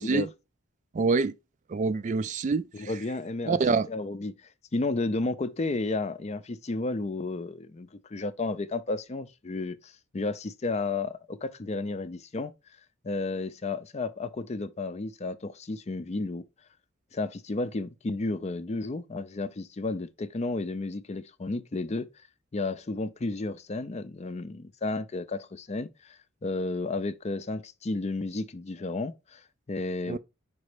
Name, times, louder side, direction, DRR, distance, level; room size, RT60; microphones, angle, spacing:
voice 1, 0.9-1.3 1.7-2.9 3.5-3.9 30.1-30.2, right 4 dB, 35° right, 0.3 m, -26 dB
voice 2, 2.7-3.6 3.9-4.3 4.7-12.5 13.0-16.4 17.1-22.1 22.5-30.2, left 3 dB, 35° left, 0.5 m, -32 dB
5.3 x 4.1 x 4.8 m
head